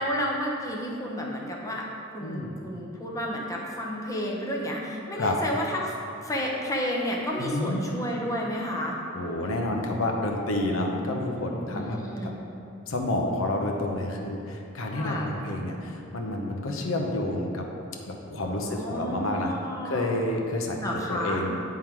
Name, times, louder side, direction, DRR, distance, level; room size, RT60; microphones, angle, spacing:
voice 1, 0.0-1.9 2.1-9.0 11.7-12.3 14.9-15.3 18.6-20.2 20.7-21.5, equal, 15° left, -2 dB, 0.7 m, -31 dB
voice 2, 2.2-2.5 5.2-5.4 7.4-8.0 9.1-12.0 12.2-12.3 12.9-17.6 18.1-19.5 19.8-21.8, left 1 dB, 65° left, 1 dB, 0.8 m, -29 dB
9.0 x 3.7 x 4.5 m, 2.7 s
head